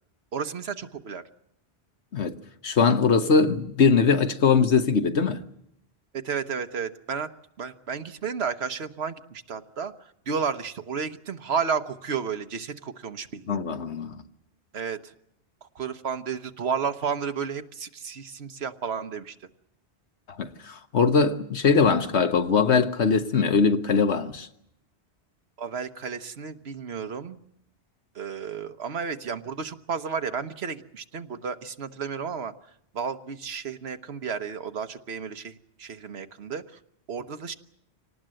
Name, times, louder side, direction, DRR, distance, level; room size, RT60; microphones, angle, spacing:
voice 1, 0.3-1.2 6.1-7.3 7.6-13.6 14.7-15.1 15.6-19.4 25.6-27.4 28.1-32.5 32.9-36.8 37.1-37.5, right 6 dB, 70° right, 1.3 m, -32 dB
voice 2, 2.6-5.4 13.5-14.2 20.4-24.5, left 5 dB, 85° left, 1.5 m, -21 dB
25.5 x 19.0 x 7.7 m
omnidirectional pair, 1.1 m